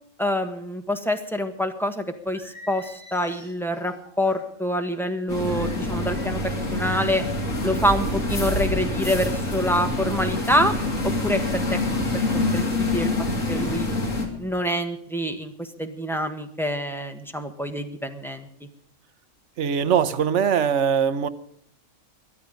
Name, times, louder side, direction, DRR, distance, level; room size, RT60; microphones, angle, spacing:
voice 1, 0.2-6.4 6.7-7.2 7.6-10.7 11.0-12.1 12.3-13.1 13.5-13.9 14.4-18.5, equal, ahead, 5 dB, 1.4 m, -26 dB
Singing, 2.3-4.5 5.4-6.3 6.7-7.3, left 1 dB, 45° left, 7.5 m, -46 dB
sound 1, 5.3-14.3, left 2 dB, 70° left, 3.1 m, -26 dB
voice 2, 19.6-21.3, right 7 dB, 65° right, 12 dB, 1.1 m, -21 dB
22.5 x 9.4 x 5.2 m, 0.68 s
omnidirectional pair, 1.4 m